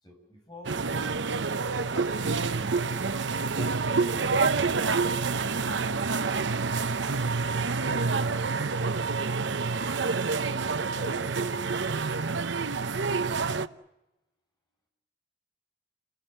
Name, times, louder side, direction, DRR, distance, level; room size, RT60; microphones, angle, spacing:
voice 1, 0.0-2.8 3.5-4.6, left 1 dB, 25° left, 2 dB, 7.2 m, -48 dB
sound 1, 0.6-13.7, right 4 dB, 85° right, 0.9 m, -28 dB
voice 2, 7.8-8.2 10.9-11.8, left 2 dB, 65° left, 4 dB, 5.3 m, -46 dB
29.0 x 20.0 x 7.9 m, 0.96 s
head